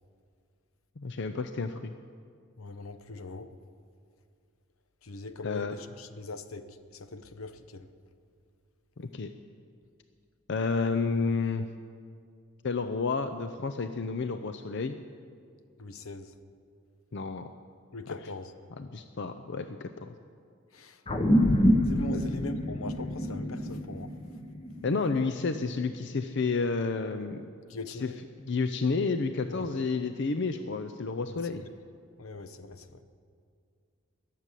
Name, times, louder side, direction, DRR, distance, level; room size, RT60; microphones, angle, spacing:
voice 1, 1.0-1.9 5.4-5.7 9.0-9.3 10.5-11.7 12.6-15.0 17.1-17.5 18.1-18.2 18.8-20.1 22.1-22.2 24.8-27.4 27.9-28.1 28.4-31.6, left 4 dB, 55° left, 0.6 m, -30 dB
voice 2, 2.6-3.5 5.0-7.9 15.8-16.3 17.9-18.5 20.7-21.0 21.9-24.1 27.7-28.2 29.5-29.7 31.3-31.4 32.2-33.0, left 3 dB, 80° left, 0.9 m, -41 dB
sound 1, 21.1-25.8, equal, 25° left, 1.1 m, -27 dB
21.5 x 7.5 x 8.3 m
head